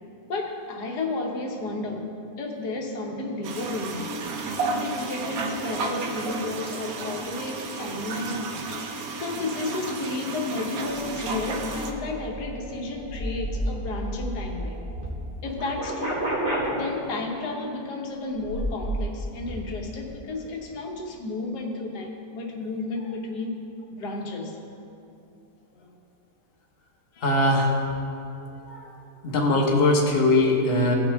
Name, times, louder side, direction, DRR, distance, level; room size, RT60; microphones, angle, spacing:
voice 1, 0.3-4.2 4.5-8.9 9.2-14.8 15.4-16.2 16.7-23.6 23.9-24.6 27.1-27.3, left 2 dB, 80° left, 1 dB, 1.6 m, -32 dB
sound 1, 3.4-11.9, right 3 dB, 65° right, 1.2 m, -32 dB
sound 2, 10.8-15.1 15.4-16.7 18.3-19.0 19.3-19.5, right 1 dB, 45° right, 2.3 m, -32 dB
voice 2, 27.2-27.7 28.7-28.9 29.2-30.9, left 2 dB, 40° left, 0 dB, 1.2 m, -21 dB
16.5 x 5.7 x 3.4 m, 2.7 s
omnidirectional pair, 1.7 m